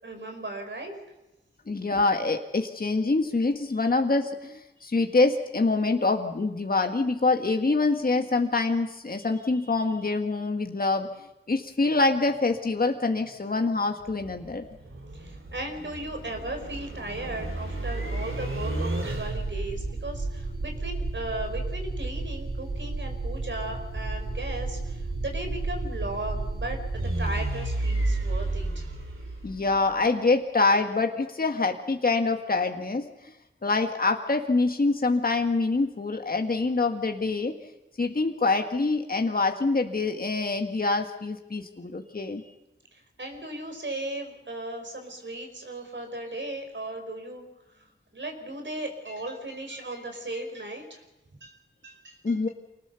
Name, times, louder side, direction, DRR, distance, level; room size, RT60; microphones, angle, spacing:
voice 1, 0.0-1.0 15.1-28.9 42.9-47.4 47.7-47.9 48.1-51.0 51.4-52.3, right 1 dB, 65° right, 4 dB, 5.2 m, -36 dB
voice 2, 1.7-11.1 11.5-14.6 29.4-33.3 33.6-37.6 38.0-42.4 52.2-52.5, left 3 dB, 45° left, 4 dB, 1.7 m, -25 dB
sound 1, 14.0-30.0, right 2 dB, 80° right, 4.0 m, -32 dB
25.0 x 19.0 x 7.0 m, 0.96 s
cardioid pair, 45°, 21 cm